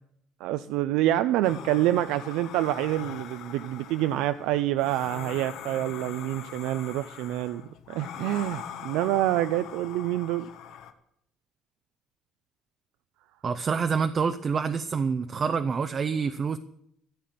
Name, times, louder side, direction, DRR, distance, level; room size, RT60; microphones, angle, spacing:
voice 1, 0.4-10.5, right 14 dB, 85° right, 11 dB, 0.5 m, -27 dB
sound 1, 1.4-10.9, left 9 dB, 65° left, 1.3 m, -42 dB
voice 2, 13.4-16.6, right 5 dB, 30° right, 10 dB, 0.6 m, -27 dB
14.5 x 8.5 x 7.7 m, 0.74 s
cardioid pair, 150°, 0 cm